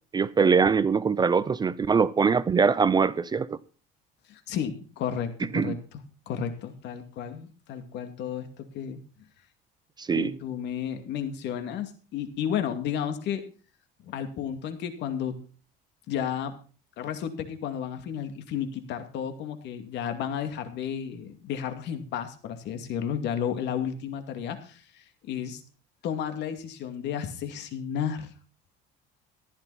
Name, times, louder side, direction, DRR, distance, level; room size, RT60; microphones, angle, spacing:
voice 1, 0.1-3.6 5.5-5.8 10.0-10.4, right 5 dB, 20° right, 0.6 m, -23 dB
voice 2, 4.3-5.8 6.3-9.0 10.2-13.4 14.0-15.4 16.1-16.5 17.0-25.6 26.0-28.3, left 8 dB, 65° left, 2.4 m, -32 dB
15.0 x 12.0 x 4.2 m
cardioid pair, 135°, 19 cm